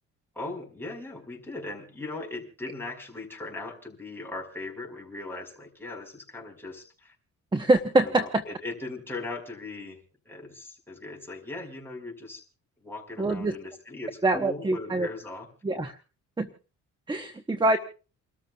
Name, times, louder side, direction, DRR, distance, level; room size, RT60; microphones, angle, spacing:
voice 1, 0.4-7.2 8.0-10.0 10.3-12.4 12.8-15.5 17.5-17.8, left 2 dB, 5° left, 0 dB, 5.2 m, -39 dB
voice 2, 7.5-8.4 13.2-13.5 14.2-15.1 15.6-16.0 16.4-16.5 17.1-17.8, right 2 dB, 15° right, 9 dB, 1.0 m, -24 dB
29.5 x 13.5 x 2.4 m, 0.35 s
cardioid pair, 90°, 30 cm